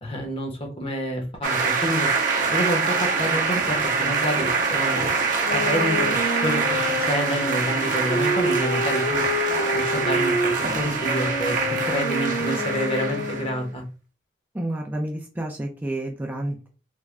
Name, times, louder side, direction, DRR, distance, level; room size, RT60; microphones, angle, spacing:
voice 1, 0.0-2.1 2.5-5.1 5.5-9.2 9.7-13.8, equal, 30° left, 2 dB, 0.9 m, -28 dB
sound 1, 1.4-13.5, right 4 dB, 50° right, 0.7 m, -25 dB
Wind instrument woodwind instrument, 5.4-13.7, left 1 dB, 70° left, 0.5 m, -28 dB
voice 2, 14.5-16.7, right 1 dB, 10° right, 0 dB, 0.5 m, -30 dB
3.6 x 2.2 x 3.2 m, 0.33 s
head